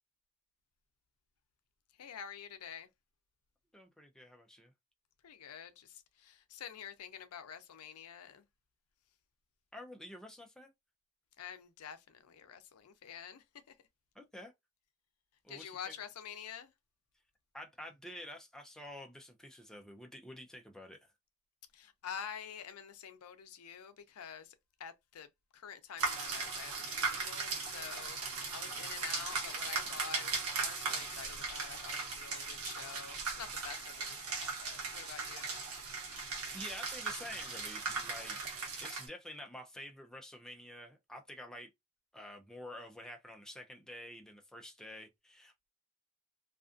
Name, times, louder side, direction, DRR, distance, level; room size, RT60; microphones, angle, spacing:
voice 1, 2.0-2.9 5.2-8.4 11.4-13.7 15.5-16.7 21.7-30.3 30.6-35.6, left 7 dB, 90° left, 0.5 m, -48 dB
voice 2, 3.7-4.7 9.7-10.7 14.2-14.5 15.4-15.9 17.5-21.1 36.2-41.7 42.1-45.7, left 1 dB, 5° left, 0.4 m, -49 dB
sound 1, 26.0-39.1, right 4 dB, 75° right, 0.9 m, -38 dB
2.4 x 2.4 x 2.5 m
head